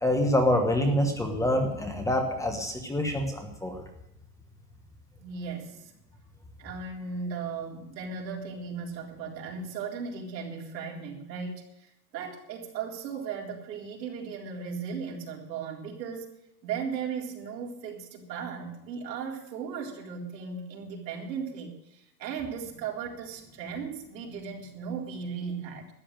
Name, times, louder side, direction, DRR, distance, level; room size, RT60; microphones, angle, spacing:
voice 1, 0.0-3.8, left 1 dB, 5° left, 4 dB, 1.1 m, -26 dB
voice 2, 5.2-5.9 6.6-16.3 16.6-25.9, right 6 dB, 80° right, 0 dB, 4.0 m, -37 dB
12.5 x 8.5 x 8.9 m, 0.82 s
supercardioid pair, 155°, 50 cm